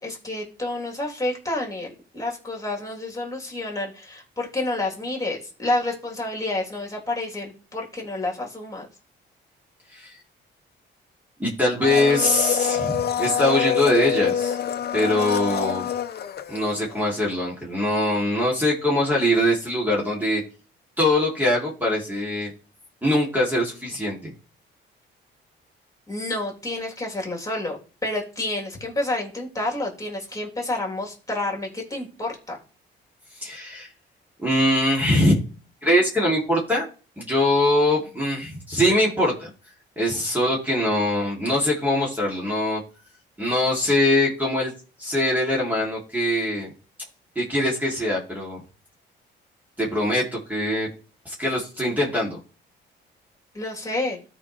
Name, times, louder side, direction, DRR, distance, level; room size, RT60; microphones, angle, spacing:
voice 1, 0.0-8.9 26.1-32.6 53.5-54.2, left 2 dB, 15° left, -1 dB, 3.5 m, -29 dB
voice 2, 11.4-14.6 14.9-15.9 16.5-20.4 21.0-22.5 23.0-24.3 33.4-33.9 34.4-35.4 35.8-36.9 37.2-39.5 40.0-42.8 43.4-44.7 45.0-46.7 47.3-48.6 49.8-50.9 51.2-52.4, left 1 dB, 10° right, -3 dB, 2.9 m, -22 dB
Domestic sounds home sounds, 11.8-17.1 17.3-17.4, left 8 dB, 55° left, 0.9 m, -26 dB
13.5 x 5.0 x 3.3 m, 0.37 s
cardioid pair, 90°, 20 cm